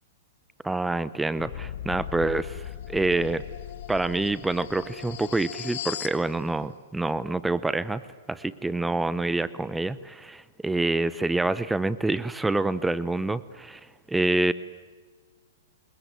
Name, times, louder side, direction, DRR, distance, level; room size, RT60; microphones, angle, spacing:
voice 1, 0.6-3.4 3.9-8.0 8.3-13.8 14.1-14.5, right 2 dB, 5° right, 16 dB, 0.7 m, -27 dB
sound 1, 1.4-6.2, left 11 dB, 60° left, 1.6 m, -38 dB
26.0 x 21.5 x 9.3 m, 1.5 s
hypercardioid pair, 145°, 0 cm